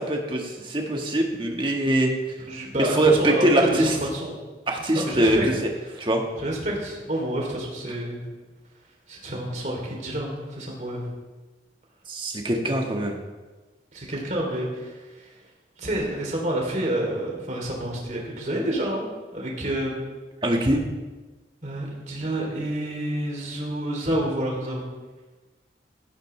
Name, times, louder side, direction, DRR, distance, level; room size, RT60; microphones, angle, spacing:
voice 1, 0.0-2.1 2.8-4.0 4.7-5.5 6.0-6.2 12.1-13.2 20.4-20.8, right 1 dB, 30° right, 1 dB, 1.6 m, -22 dB
voice 2, 2.5-4.4 4.8-5.5 6.4-8.3 9.1-11.1 13.9-15.3 15.8-20.0 21.6-24.8, right 1 dB, 45° right, -1 dB, 3.2 m, -29 dB
14.5 x 13.0 x 3.3 m, 1.2 s
head